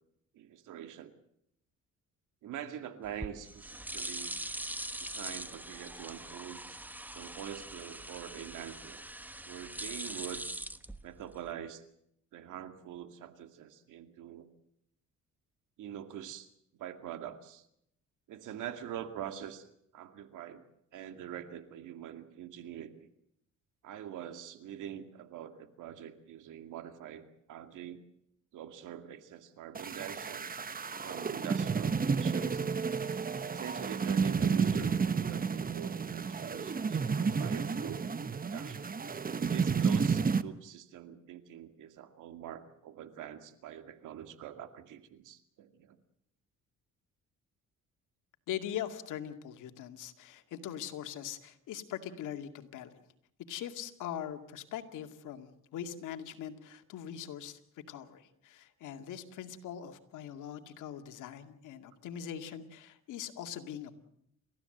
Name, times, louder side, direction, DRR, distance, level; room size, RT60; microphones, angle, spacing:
voice 1, 0.3-1.1 2.4-4.4 5.0-6.8 7.1-9.0 9.5-10.4 11.0-11.8 12.3-14.5 15.8-16.5 16.8-17.6 18.3-19.7 19.9-20.6 20.9-23.1 23.8-28.0 28.5-30.5 31.0-32.6 33.5-38.1 38.4-38.9 39.5-46.0, right 10 dB, 85° right, 8 dB, 2.3 m, -44 dB
sound 1, 3.0-11.5, right 1 dB, 5° right, 1.2 m, -42 dB
sound 2, 29.7-40.4, right 5 dB, 30° right, 1.1 m, -31 dB
voice 2, 48.5-52.9 53.5-57.6 57.9-64.0, left 10 dB, 85° left, 6 dB, 2.3 m, -41 dB
30.0 x 15.0 x 7.9 m, 0.74 s
cardioid pair, 90°, 30 cm